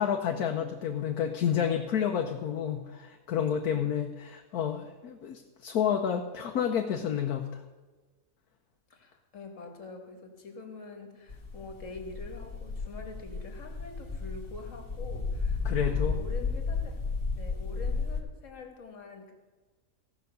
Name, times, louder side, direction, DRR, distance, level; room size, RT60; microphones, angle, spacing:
voice 1, 0.0-7.6 15.6-16.2, left 8 dB, 85° left, 3 dB, 1.3 m, -30 dB
voice 2, 8.9-17.0 17.4-19.3, left 3 dB, 60° left, 3 dB, 1.9 m, -45 dB
sound 1, 11.3-18.2, left 4 dB, 40° left, 1.5 m, -33 dB
16.0 x 5.7 x 6.7 m, 1.3 s
omnidirectional pair, 1.5 m